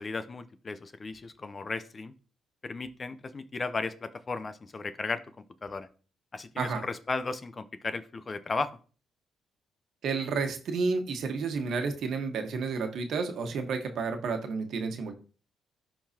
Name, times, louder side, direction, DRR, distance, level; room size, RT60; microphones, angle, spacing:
voice 1, 0.0-2.1 2.6-5.2 5.6-5.9 6.3-8.7, left 3 dB, 35° left, 12 dB, 0.7 m, -35 dB
voice 2, 10.0-15.1, right 4 dB, 70° right, 5 dB, 1.3 m, -31 dB
11.5 x 3.8 x 2.9 m, 0.38 s
cardioid pair, 90°, 0 cm